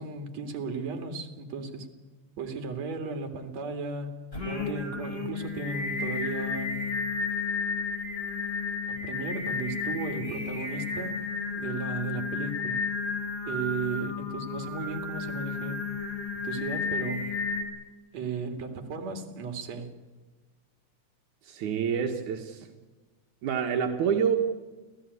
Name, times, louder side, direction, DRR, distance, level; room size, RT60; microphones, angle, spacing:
voice 1, 0.0-1.9 2.4-6.8 8.9-11.2 11.5-12.8 13.5-15.8 16.4-17.3 18.1-19.9, right 4 dB, 65° right, 6 dB, 3.6 m, -35 dB
Singing, 4.3-17.6, left 5 dB, 20° left, 4.2 m, -32 dB
voice 2, 21.4-22.7 23.4-24.4, right 7 dB, 80° right, 3 dB, 2.9 m, -27 dB
26.5 x 16.5 x 9.7 m, 1.3 s
omnidirectional pair, 3.4 m